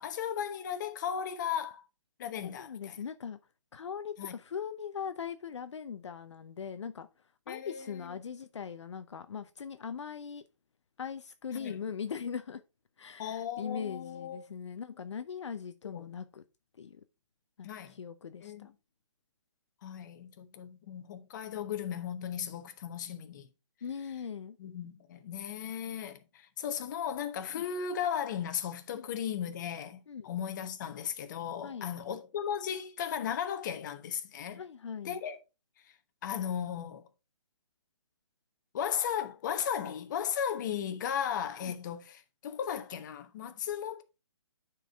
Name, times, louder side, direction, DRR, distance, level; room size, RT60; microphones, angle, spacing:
voice 1, 0.0-1.8 2.2-3.0 4.2-4.3 7.5-8.1 11.5-11.8 13.2-14.5 15.8-16.1 17.6-17.9 18.4-18.7 19.8-23.5 24.6-34.6 35.0-35.4 36.2-37.1 38.7-44.0, left 8 dB, 40° left, 1.1 m, -36 dB
voice 2, 2.4-3.4 3.7-7.1 7.5-10.4 11.0-12.6 13.0-16.4 16.8-17.0 17.6-18.7 23.8-24.6 27.5-27.6 28.9-29.1 30.1-30.3 31.6-31.9 34.6-35.2 41.6-41.8, left 7 dB, 70° left, 0.7 m, -40 dB
9.0 x 4.7 x 3.6 m
hypercardioid pair, 150°, 16 cm